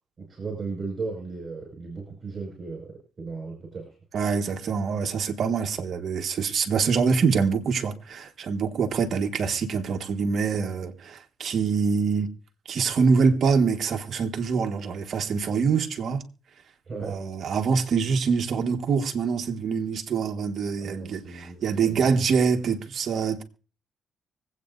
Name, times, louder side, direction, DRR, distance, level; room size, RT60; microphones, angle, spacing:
voice 1, 0.2-4.0 16.8-17.2 20.8-22.2, right 4 dB, 40° right, 5.4 m, -36 dB
voice 2, 4.1-12.3 12.7-16.2 17.0-23.4, right 5 dB, 60° right, 1.4 m, -25 dB
25.0 x 8.4 x 2.6 m
cardioid pair, 90°, 0 cm